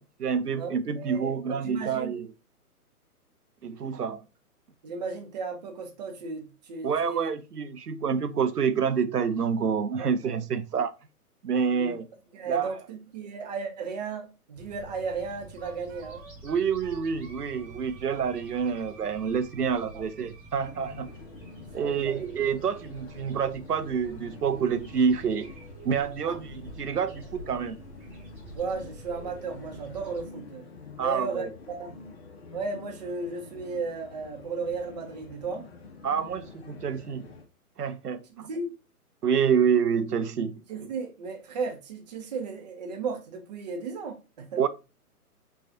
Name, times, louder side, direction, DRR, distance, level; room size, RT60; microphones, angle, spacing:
voice 1, 0.0-2.3 3.6-4.2 6.8-10.9 11.4-12.1 12.5-12.7 16.4-21.1 21.7-25.5 25.8-27.8 31.0-31.5 36.0-37.3 37.8-38.5 39.2-40.6 44.6-44.7, right 6 dB, 90° right, 0.6 m, -27 dB
voice 2, 0.6-2.2 4.8-7.3 10.0-10.4 11.7-11.9 12.3-16.2 19.9-20.0 21.8-22.2 26.2-26.4 28.5-30.7 31.0-32.0 32.5-35.7 38.4-38.7 40.7-44.7, right 4 dB, 30° right, 0.7 m, -35 dB
sound 1, 14.5-30.3, right 1 dB, 5° right, 1.0 m, -48 dB
Wind instrument woodwind instrument, 15.6-21.2, right 5 dB, 55° right, 1.0 m, -52 dB
sound 2, 20.6-37.5, left 3 dB, 45° left, 0.8 m, -47 dB
5.5 x 2.4 x 2.5 m
figure-of-eight pair, 130°, 46 cm